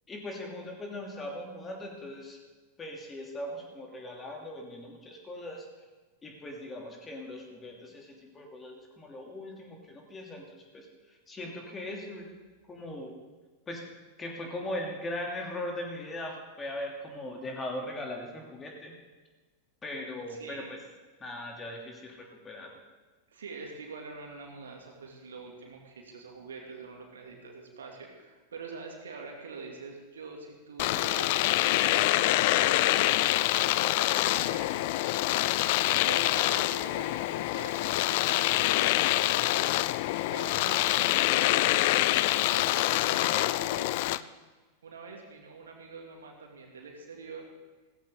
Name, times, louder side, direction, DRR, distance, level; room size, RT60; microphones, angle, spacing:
voice 1, 0.1-2.4 2.8-5.7 6.2-12.3 12.7-13.1 13.7-13.8 14.2-18.9 19.8-20.8 21.2-22.7, left 1 dB, 20° left, 1 dB, 3.0 m, -39 dB
voice 2, 20.3-20.7 23.3-31.4 31.7-35.4 36.0-39.7 40.2-44.4 44.8-47.5, right 4 dB, 65° right, 1 dB, 2.6 m, -45 dB
Domestic sounds home sounds, 30.8-44.2, left 16 dB, 50° left, 0.4 m, -26 dB
16.5 x 15.0 x 3.9 m, 1.3 s
figure-of-eight pair, 90°, 0 cm